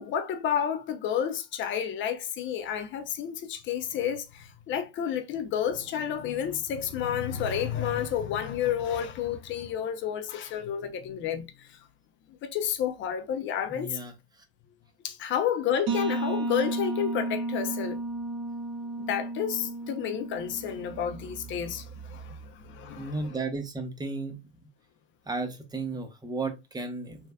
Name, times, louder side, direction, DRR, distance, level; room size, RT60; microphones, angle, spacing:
voice 1, 0.0-11.8 12.4-14.0 15.0-18.0 19.0-23.3, left 9 dB, 35° left, 0.7 m, -30 dB
voice 2, 13.7-14.1 22.9-24.4 25.3-27.2, right 3 dB, 10° right, 0.9 m, -34 dB
sound 1, 15.9-21.4, right 2 dB, 55° right, 1.5 m, -33 dB
3.5 x 3.2 x 2.3 m
hypercardioid pair, 100°, 34 cm